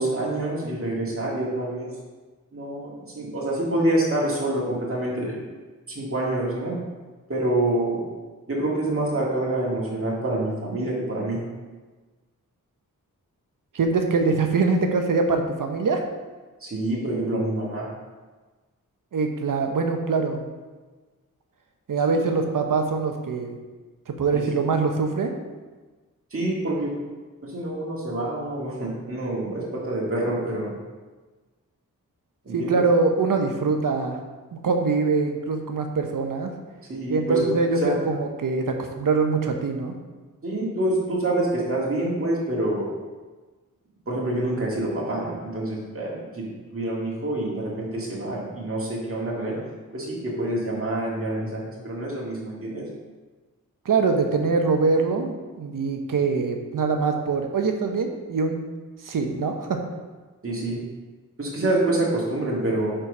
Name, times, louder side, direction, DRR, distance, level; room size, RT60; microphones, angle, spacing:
voice 1, 0.0-1.9 2.5-5.4 5.9-6.8 7.3-8.0 8.5-11.4 16.6-17.9 22.1-22.2 24.3-24.6 26.3-26.9 27.4-30.7 32.5-32.8 36.9-37.4 37.8-38.0 40.4-42.9 44.1-46.5 46.7-49.6 49.9-52.8 60.4-60.8 61.4-63.0, right 1 dB, 40° right, -5 dB, 1.9 m, -27 dB
voice 2, 13.7-16.0 19.1-20.4 21.9-23.6 24.2-25.3 32.5-34.2 34.5-36.5 37.1-39.9 53.8-58.6 59.0-59.8, right 4 dB, 70° right, 4 dB, 0.9 m, -23 dB
5.0 x 4.6 x 6.0 m, 1.3 s
cardioid pair, 50°, 34 cm